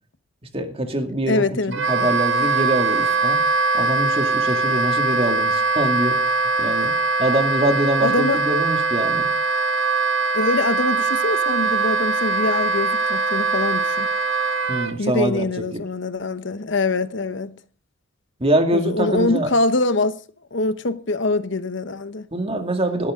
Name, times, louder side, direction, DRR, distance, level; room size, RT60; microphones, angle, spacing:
voice 1, 0.5-3.4 3.7-6.9 7.2-9.3 14.7-15.8 18.4-19.5 22.3-23.1, right 1 dB, 30° right, 2.2 m, -24 dB
voice 2, 1.3-1.8 6.6-6.7 8.0-8.4 10.3-14.1 15.0-17.6 18.7-20.2 20.5-22.3, left 2 dB, 60° left, 1.0 m, -23 dB
Wind instrument woodwind instrument, 1.7-14.9, right 3 dB, 65° right, 1.6 m, -21 dB
16.5 x 13.0 x 3.8 m
head